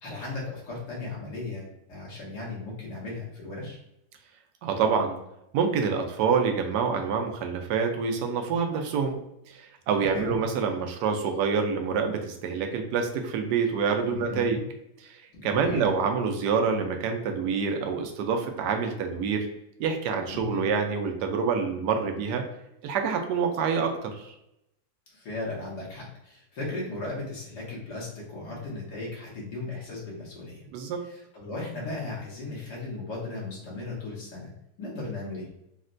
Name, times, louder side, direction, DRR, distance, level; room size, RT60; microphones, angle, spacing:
voice 1, 0.0-3.8 10.0-10.3 14.0-14.6 15.3-15.9 20.3-20.6 25.1-30.6 31.0-34.5 34.8-35.5, left 2 dB, 80° left, -5 dB, 1.7 m, -36 dB
voice 2, 4.6-5.2 5.5-9.2 9.5-14.6 15.0-19.5 19.8-22.4 22.8-24.3 30.7-31.0, right 5 dB, 85° right, 4 dB, 1.2 m, -27 dB
4.0 x 2.1 x 2.5 m, 0.82 s
omnidirectional pair, 1.7 m